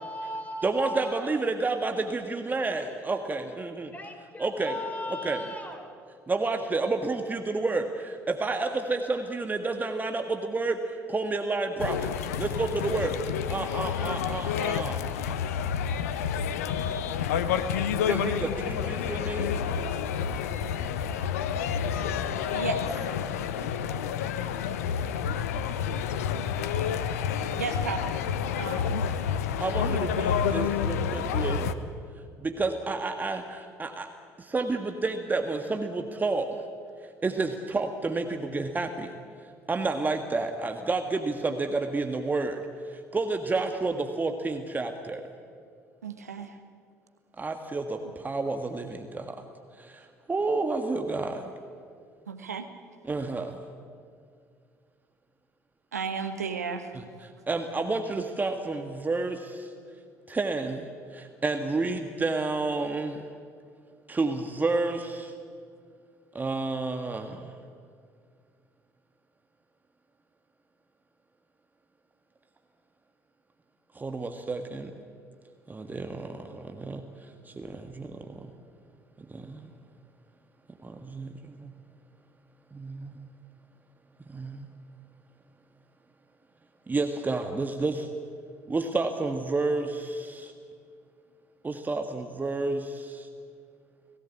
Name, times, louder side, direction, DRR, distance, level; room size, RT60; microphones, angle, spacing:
voice 1, 0.0-1.3 3.9-5.9, left 1 dB, 15° left, 6 dB, 4.2 m, -37 dB
voice 2, 0.6-3.9 4.4-4.8 5.1-5.4 6.3-15.1 18.0-19.5 29.6-31.7 32.4-34.1 34.4-36.5 37.2-39.1 39.7-42.6 42.9-45.2 47.4-49.5 49.8-51.5 53.0-53.6 56.9-59.7 60.3-60.8 61.1-63.2 64.1-65.3 66.3-67.5 73.9-74.9 75.7-77.0 77.4-78.5 79.3-79.6 80.8-81.7 82.7-83.1 84.3-84.7 86.9-88.1 88.7-90.5 91.6-93.3, right 3 dB, 20° right, 6 dB, 1.6 m, -30 dB
sound 1, 11.8-31.7, left 7 dB, 70° left, 0.9 m, -29 dB
voice 3, 22.5-22.9 27.6-28.2 28.5-29.0 46.0-46.5 52.3-52.6 55.9-56.9, right 5 dB, 80° right, 8 dB, 1.3 m, -33 dB
29.5 x 18.0 x 8.7 m, 2.2 s
figure-of-eight pair, 55°, 8 cm